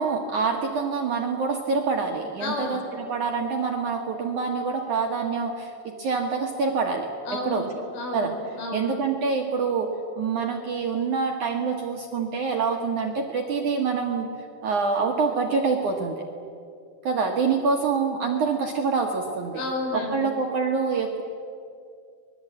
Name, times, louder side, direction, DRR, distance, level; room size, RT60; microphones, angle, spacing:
voice 1, 0.0-7.7 8.1-8.3 8.7-14.3 14.6-16.2 17.0-19.6 19.9-21.2, right 5 dB, 60° right, 2 dB, 2.1 m, -26 dB
voice 2, 2.4-2.8 7.3-8.9 19.5-20.3, left 2 dB, 90° left, 1 dB, 7.3 m, -31 dB
26.0 x 20.5 x 8.8 m, 2.4 s
omnidirectional pair, 5.5 m